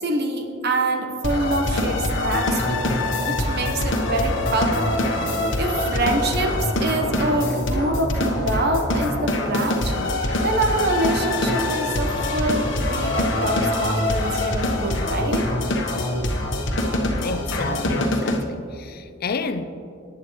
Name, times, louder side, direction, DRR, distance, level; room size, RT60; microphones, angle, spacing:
voice 1, 0.0-2.8 3.1-5.1 5.6-9.9 10.4-15.4, right 2 dB, 55° right, 4 dB, 1.1 m, -25 dB
sound 1, 1.2-18.4, left 1 dB, 70° left, 1.2 m, -24 dB
voice 2, 17.1-19.6, left 4 dB, 50° left, 10 dB, 0.6 m, -30 dB
18.0 x 10.0 x 3.2 m, 2.6 s
head